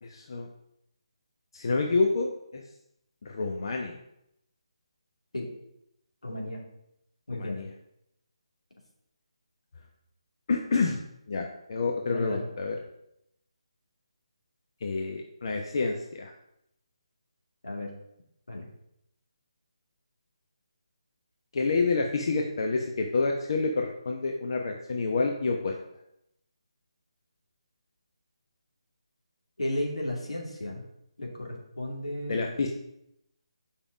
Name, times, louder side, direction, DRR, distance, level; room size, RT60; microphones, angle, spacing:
voice 1, 0.0-0.5 1.5-2.6 3.2-4.0 7.3-7.7 10.5-11.0 11.3-12.8 14.8-16.3 21.5-25.7 32.3-32.7, left 3 dB, 50° left, 2 dB, 0.9 m, -28 dB
voice 2, 6.2-6.6 7.3-7.6 12.1-12.5 17.6-17.9 18.5-18.7 29.6-30.8 31.2-32.4, left 1 dB, 85° left, 0 dB, 2.6 m, -34 dB
7.1 x 5.4 x 5.0 m, 0.81 s
figure-of-eight pair, 155°, 3 cm